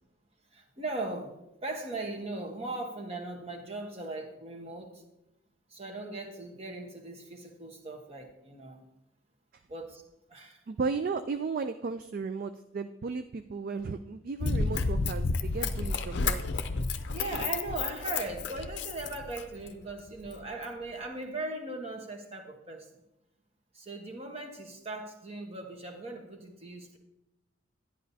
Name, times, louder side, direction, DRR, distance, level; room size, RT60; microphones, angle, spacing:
voice 1, 0.5-1.3 1.6-5.0 5.7-8.8 9.7-10.0 10.3-10.6 17.1-22.9 23.7-27.0, right 2 dB, 30° right, 2 dB, 1.1 m, -39 dB
voice 2, 10.7-16.5, right 4 dB, 45° right, 9 dB, 0.3 m, -35 dB
Run, 14.4-19.7 20.3-20.4, left 4 dB, 55° left, 0.6 m, -31 dB
11.0 x 10.5 x 2.7 m, 0.88 s
head